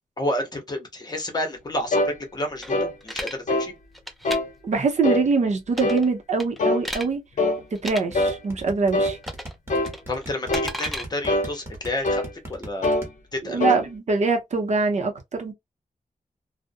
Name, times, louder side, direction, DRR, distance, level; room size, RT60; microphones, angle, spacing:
voice 1, 0.2-3.7 10.1-12.9 13.3-13.6, left 1 dB, 30° left, 0.8 m, -30 dB
sound 1, 1.9-2.2 2.7-2.9 3.5-3.7 4.2-4.5 5.0-5.3 5.8-6.1 6.6-6.9 7.4-7.6 8.1-8.4 8.9-9.2 9.7-9.9 10.5-10.8 11.3-11.5 12.0-12.3 12.8-13.1 13.6-13.8, left 2 dB, 65° left, 0.6 m, -23 dB
sound 2, 2.6-3.4 3.9-4.4 5.7-6.1 6.4-7.1 7.8-8.0 9.2-9.6 9.8-11.0, equal, ahead, 0.4 m, -33 dB
voice 2, 4.6-7.2 7.7-9.2 13.5-15.5, right 4 dB, 55° right, 0.6 m, -23 dB
sound 3, 8.1-13.1, right 1 dB, 20° right, 1.0 m, -37 dB
2.4 x 2.0 x 2.5 m
wide cardioid pair, 145°, 14 cm